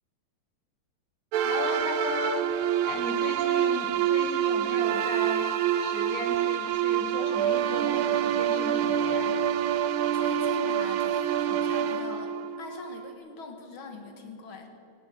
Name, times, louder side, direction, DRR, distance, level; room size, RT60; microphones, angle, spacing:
sound 1, 1.3-13.1, right 10 dB, 90° right, 1.6 m, -26 dB
voice 1, 1.4-9.4, left 5 dB, 45° left, 5 dB, 1.7 m, -37 dB
voice 2, 10.1-12.3 12.6-14.7, left 3 dB, 75° left, 4 dB, 2.4 m, -42 dB
18.0 x 17.5 x 4.5 m, 2.7 s
omnidirectional pair, 2.3 m